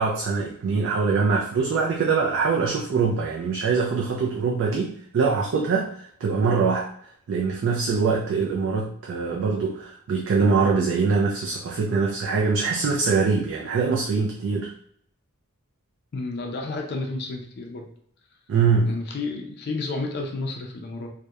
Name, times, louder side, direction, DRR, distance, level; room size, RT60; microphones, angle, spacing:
voice 1, 0.0-6.9 7.3-14.7 18.5-18.9, right 5 dB, 60° right, -1 dB, 0.3 m, -23 dB
voice 2, 16.1-17.9 18.8-21.1, left 3 dB, 50° left, 2 dB, 0.4 m, -31 dB
2.8 x 2.1 x 2.3 m, 0.65 s
head